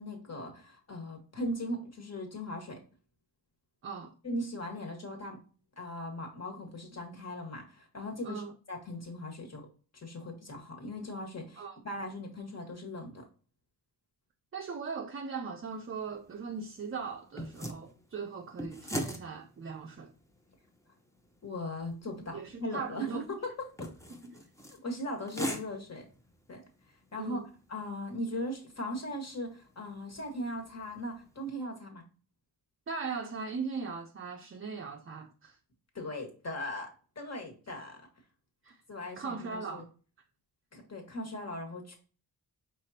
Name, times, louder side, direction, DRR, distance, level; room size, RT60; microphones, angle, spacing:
voice 1, 0.0-2.8 4.2-5.4 5.8-8.4 8.7-9.7 9.9-13.2 21.4-23.9 24.7-26.1 26.5-26.6 27.1-27.4 27.7-32.0 35.9-36.9 37.1-38.0 38.9-39.8 40.7-42.0, left 1 dB, 40° left, 1.6 m, -39 dB
voice 2, 3.8-4.1 8.2-8.5 11.6-11.8 14.5-20.1 22.3-23.2 24.1-24.4 27.2-27.5 32.9-35.6 38.6-38.8 39.2-39.9, right 5 dB, 35° right, 0.5 m, -39 dB
sound 1, 15.7-31.5, equal, 10° left, 0.8 m, -44 dB
4.9 x 3.8 x 2.8 m
cardioid pair, 90°, 39 cm